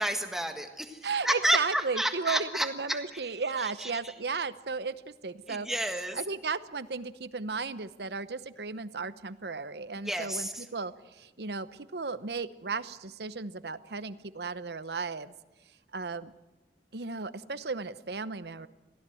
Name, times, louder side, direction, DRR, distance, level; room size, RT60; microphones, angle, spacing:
voice 1, 0.0-3.0 3.6-4.1 5.5-6.2 10.0-10.6, right 1 dB, ahead, 5 dB, 1.6 m, -31 dB
voice 2, 1.0-5.7 6.1-11.7 11.9-15.3 15.9-16.3 16.9-18.7, right 4 dB, 75° right, 14 dB, 0.9 m, -35 dB
23.0 x 16.0 x 7.7 m, 1.1 s
head